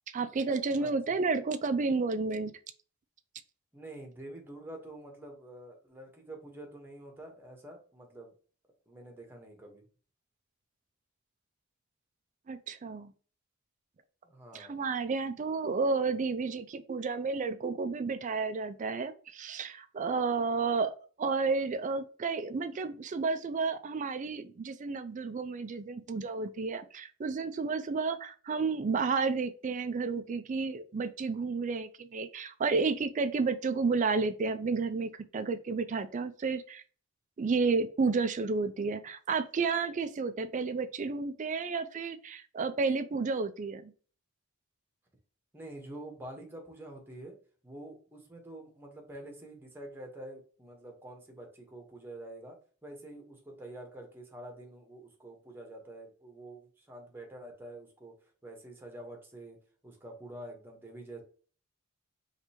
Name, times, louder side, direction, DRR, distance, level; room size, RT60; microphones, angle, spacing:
voice 1, 0.1-2.5 12.5-13.1 14.5-20.9 21.2-36.8 37.4-43.9, right 4 dB, 35° right, 11 dB, 0.4 m, -31 dB
voice 2, 0.8-1.2 3.7-8.3 8.9-9.8 14.2-14.9 45.5-47.4 47.6-52.6 52.8-59.6 59.8-61.2, right 1 dB, 10° right, 2 dB, 1.2 m, -47 dB
5.1 x 3.2 x 2.9 m, 0.40 s
head